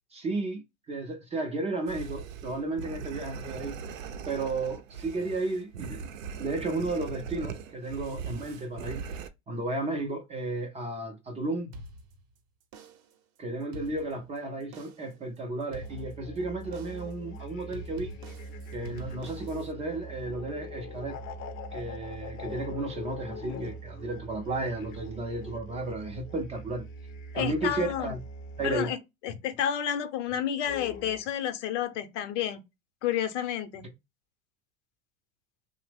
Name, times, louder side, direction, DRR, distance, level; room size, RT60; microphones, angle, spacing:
voice 1, 0.1-3.8 4.3-6.1 6.4-9.1 9.5-11.7 13.4-18.1 18.7-21.2 21.7-26.9 27.3-28.2 28.6-28.9, right 2 dB, 20° right, 0.4 m, -33 dB
sound 1, 1.9-9.3, right 6 dB, 85° right, 0.5 m, -40 dB
sound 2, 11.7-12.4 12.7-13.2 13.6-14.4 14.7-15.2 15.7-16.4 16.7-17.2 17.7-19.7, equal, 45° right, 0.7 m, -46 dB
sound 3, 15.7-28.9 30.7-31.2, equal, 35° left, 0.5 m, -42 dB
voice 2, 27.3-28.2 28.6-29.0 29.2-32.6 33.0-33.9, left 10 dB, 70° left, 0.7 m, -30 dB
2.8 x 2.0 x 3.2 m
hypercardioid pair, 110°, 38 cm